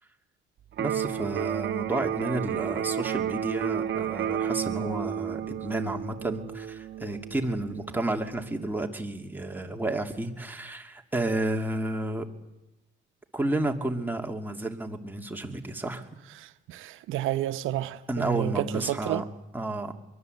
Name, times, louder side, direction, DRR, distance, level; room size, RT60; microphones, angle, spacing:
Electric guitar, 0.7-8.7, right 9 dB, 65° right, 1.3 m, -32 dB
voice 1, 0.8-12.3 13.3-16.1 18.1-19.2 19.5-19.9, right 2 dB, 10° right, 2.7 m, -31 dB
voice 2, 16.7-19.2, right 13 dB, 90° right, 0.8 m, -30 dB
23.5 x 22.5 x 8.1 m
cardioid pair, 90°, 20 cm